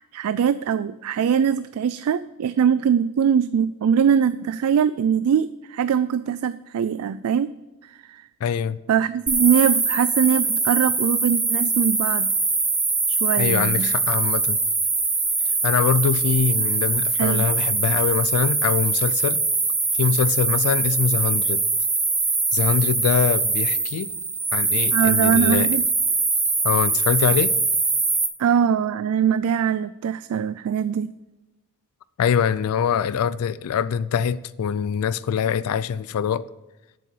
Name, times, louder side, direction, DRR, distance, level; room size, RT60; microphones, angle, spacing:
voice 1, 0.0-7.5 7.8-8.2 8.9-12.3 13.1-13.9 17.2-17.5 24.9-25.9 28.4-31.1, right 7 dB, 75° right, 0.3 m, -22 dB
voice 2, 8.4-8.8 13.4-14.6 15.6-19.4 20.0-21.6 22.5-24.1 24.5-25.7 26.6-27.5 32.2-36.5, left 7 dB, 75° left, 0.3 m, -23 dB
sound 1, 9.3-28.3, right 3 dB, 10° right, 0.7 m, -22 dB
7.8 x 7.4 x 7.1 m
head